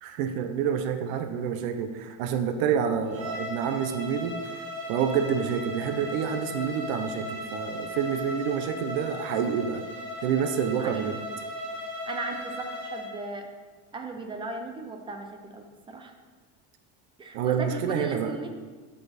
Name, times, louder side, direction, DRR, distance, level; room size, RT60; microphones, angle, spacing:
voice 1, 0.0-4.6 4.9-9.9 10.2-11.2 17.3-18.3, right 7 dB, 85° right, 8 dB, 1.0 m, -28 dB
Bowed string instrument, 3.1-13.1, left 1 dB, 60° right, 2.2 m, -37 dB
voice 2, 10.8-11.2 11.9-13.5 13.9-16.1 17.2-18.5, right 3 dB, 15° right, 5 dB, 0.4 m, -37 dB
8.5 x 6.7 x 4.2 m, 1.4 s
cardioid pair, 175°, 39 cm